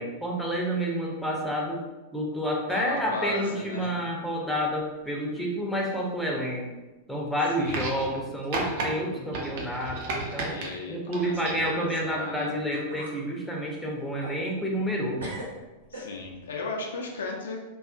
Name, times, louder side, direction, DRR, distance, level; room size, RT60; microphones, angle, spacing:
voice 1, 0.0-1.8 2.1-6.7 7.1-10.6 10.9-15.3, equal, 5° left, -3 dB, 0.5 m, -29 dB
voice 2, 2.7-3.9 7.6-7.8 10.5-12.5 15.9-17.7, left 3 dB, 65° left, 0 dB, 0.3 m, -36 dB
sound 1, 4.5-5.4 5.7-6.2 6.6-6.7 7.6-7.7 8.4-8.5 8.9-9.4 9.6-9.7 12.3-12.4 12.7-13.2 13.7-14.9 15.2-16.5, right 1 dB, 75° right, 0.8 m, -43 dB
sound 2, 7.7-8.2 8.5-8.9 9.3-10.7 11.1-11.8 12.8-12.9, right 2 dB, 50° right, 0.4 m, -33 dB
2.3 x 2.3 x 2.2 m, 1.1 s
figure-of-eight pair, 90°, 0 cm